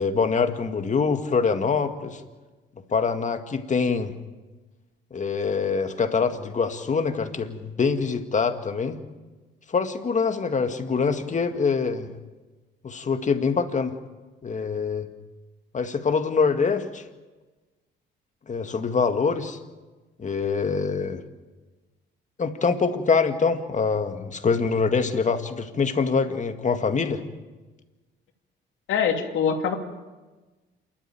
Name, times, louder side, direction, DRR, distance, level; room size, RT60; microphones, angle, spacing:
voice 1, 0.0-2.2 2.9-4.1 5.1-9.0 9.7-12.1 12.8-14.0 14.4-15.1 15.7-17.0 18.5-19.6 20.2-21.2 22.4-27.2, left 5 dB, 40° left, 7 dB, 1.9 m, -24 dB
voice 2, 28.9-29.8, left 7 dB, 80° left, 4 dB, 2.7 m, -23 dB
28.0 x 12.0 x 9.1 m, 1.2 s
cardioid pair, 90°, 20 cm